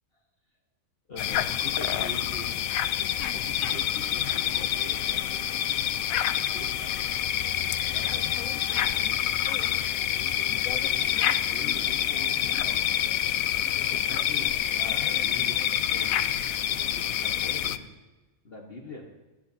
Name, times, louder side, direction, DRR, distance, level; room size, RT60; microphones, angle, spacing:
voice 1, 1.1-2.6 3.3-7.0 7.9-16.3 16.6-17.9 18.4-19.1, left 2 dB, 45° left, 0 dB, 1.6 m, -44 dB
sound 1, 1.2-17.8, left 11 dB, 85° left, 1.0 m, -27 dB
29.0 x 10.5 x 2.8 m, 1.2 s
omnidirectional pair, 1.4 m